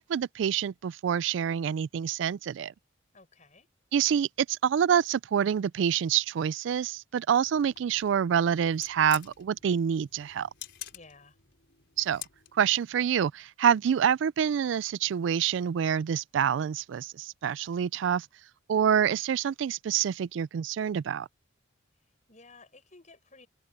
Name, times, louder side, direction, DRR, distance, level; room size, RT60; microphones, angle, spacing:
voice 1, 0.0-2.7 3.9-10.5 12.0-12.2 12.5-18.3 18.7-21.3, right 8 dB, 65° right, 0.3 m, -27 dB
voice 2, 3.1-3.7 10.9-11.4 22.0-23.5, left 3 dB, 40° left, 7.0 m, -55 dB
sound 1, 7.4-12.7, left 12 dB, 60° left, 5.2 m, -48 dB
head